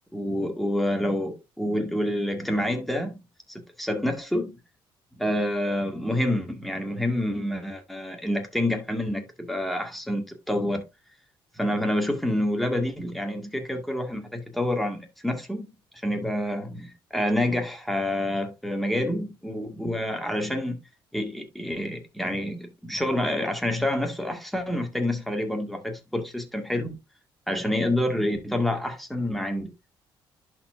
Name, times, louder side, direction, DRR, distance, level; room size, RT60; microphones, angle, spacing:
voice 1, 0.1-3.2 3.5-4.5 5.2-10.9 11.6-15.7 16.0-20.8 21.1-27.0 27.5-29.7, left 1 dB, ahead, 2.1 m, -28 dB
11.0 x 4.6 x 2.7 m
cardioid pair, 100°, 10 cm